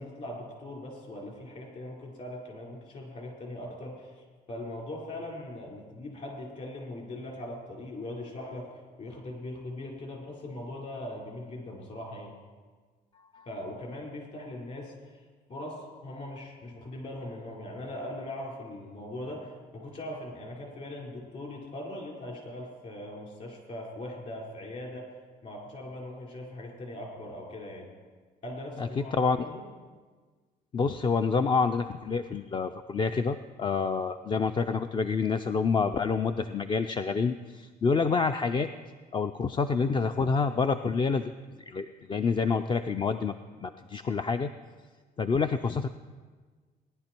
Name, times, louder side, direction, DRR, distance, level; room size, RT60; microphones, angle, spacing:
voice 1, 0.0-8.7 9.0-12.4 13.5-14.9 15.5-25.0 25.4-27.9 28.4-29.6, left 1 dB, 45° left, -1 dB, 4.5 m, -40 dB
voice 2, 28.8-29.4 30.7-38.7 39.1-41.3 41.7-43.3 43.6-44.5 45.2-45.9, left 5 dB, 30° left, 8 dB, 0.4 m, -27 dB
18.0 x 10.5 x 4.5 m, 1.4 s
cardioid pair, 110°, 17 cm